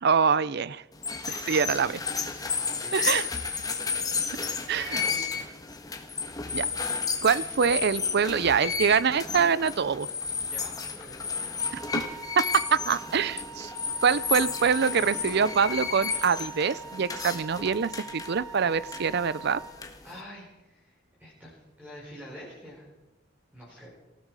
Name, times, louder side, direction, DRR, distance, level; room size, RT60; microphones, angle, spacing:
voice 1, 0.0-0.8 1.5-2.0 2.9-3.3 4.7-5.0 6.5-6.7 7.2-10.1 11.9-12.0 12.4-13.7 14.0-19.6, right 6 dB, 55° right, 18 dB, 0.6 m, -25 dB
sound 1, 0.9-20.2, left 5 dB, 20° left, 1.5 m, -33 dB
voice 2, 1.2-1.8 2.1-3.2 4.7-5.5 10.4-11.6 20.0-22.9 23.5-23.9, equal, 10° right, -6 dB, 4.6 m, -47 dB
Wind instrument woodwind instrument, 11.6-19.8, right 5 dB, 30° right, 2.6 m, -44 dB
19.0 x 15.5 x 4.9 m, 1.0 s
head